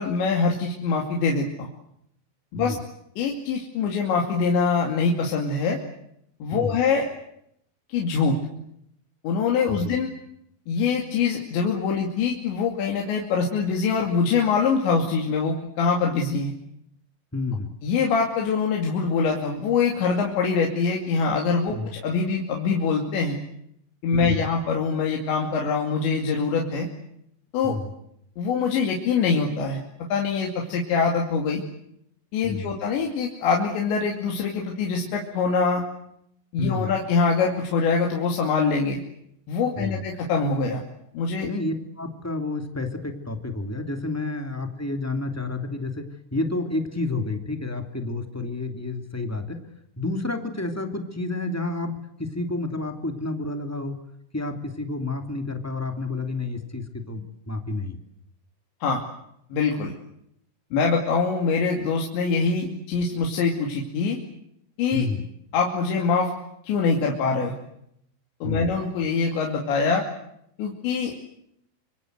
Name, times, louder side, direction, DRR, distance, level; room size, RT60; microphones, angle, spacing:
voice 1, 0.0-1.7 2.5-2.7 3.2-5.8 6.4-7.1 7.9-8.4 9.2-10.1 10.7-16.5 17.8-23.4 24.0-26.9 27.5-27.8 28.4-29.8 30.1-31.6 32.3-35.8 36.5-39.0 39.5-40.8 41.1-41.5 58.8-59.0 59.5-59.9 60.7-64.2 64.8-65.1 65.5-66.3 66.6-67.6 68.4-70.0 70.6-71.3, left 5 dB, 75° left, 0 dB, 4.8 m, -24 dB
voice 2, 9.7-10.0 17.3-17.7 21.7-21.9 24.1-24.4 27.6-27.9 32.4-32.7 36.6-36.9 39.8-40.0 41.4-46.0 46.3-49.6 50.0-54.0 54.3-58.0 64.9-65.2 68.4-68.8, left 2 dB, 5° left, 5 dB, 1.5 m, -30 dB
26.5 x 26.0 x 8.0 m, 0.75 s
omnidirectional pair, 5.3 m